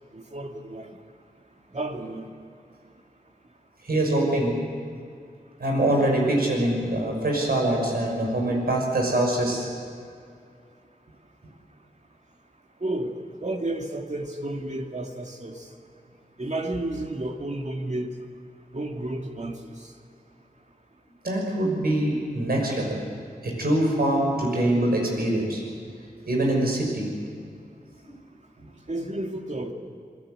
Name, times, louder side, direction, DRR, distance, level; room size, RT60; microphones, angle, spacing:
voice 1, 0.1-0.9 1.7-2.3 12.8-13.1 13.4-15.6 16.4-18.1 18.7-19.6 28.9-29.7, right 1 dB, 50° right, 2 dB, 2.6 m, -31 dB
voice 2, 3.8-4.6 5.6-9.7 21.2-23.0 23.4-25.6 26.3-27.1 28.0-28.1, right 1 dB, 90° right, 0 dB, 6.3 m, -24 dB
27.0 x 18.5 x 8.0 m, 2.2 s
wide cardioid pair, 50°, 15 cm